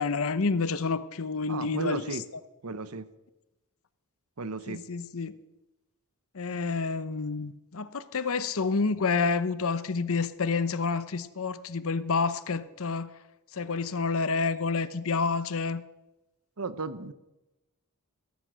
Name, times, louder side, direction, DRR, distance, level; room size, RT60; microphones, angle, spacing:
voice 1, 0.0-2.2 4.7-5.4 6.3-13.1 13.5-15.8, left 4 dB, 65° left, 14 dB, 0.9 m, -29 dB
voice 2, 1.5-2.2 2.6-3.1 4.4-4.8 16.6-17.1, right 4 dB, 70° right, 14 dB, 0.9 m, -34 dB
16.5 x 14.0 x 6.2 m, 1.0 s
head